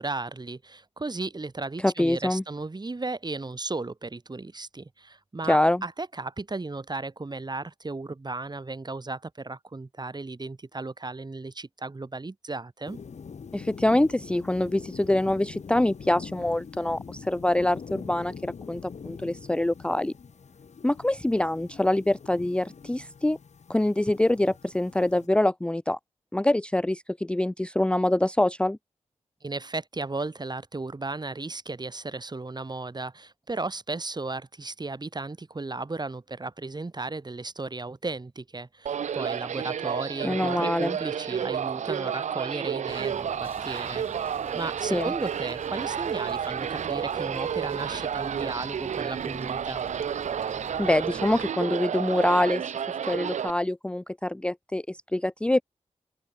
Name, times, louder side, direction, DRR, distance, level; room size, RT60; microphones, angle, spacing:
voice 1, 0.0-13.0 29.4-44.1 44.5-49.8, right 3 dB, 35° right, 2.0 m, -35 dB
voice 2, 1.8-2.4 5.5-5.8 13.5-20.1 20.8-23.4 23.7-26.0 26.3-28.8 40.2-41.0 44.9-45.1 50.8-52.6 53.0-55.6, left 1 dB, 10° left, 0.4 m, -25 dB
sound 1, 12.8-25.3, left 6 dB, 75° left, 2.3 m, -44 dB
sound 2, 38.9-53.5, right 8 dB, 80° right, 0.6 m, -31 dB
sound 3, 42.9-51.5, left 4 dB, 50° left, 3.9 m, -48 dB
open air
cardioid pair, 45°, 12 cm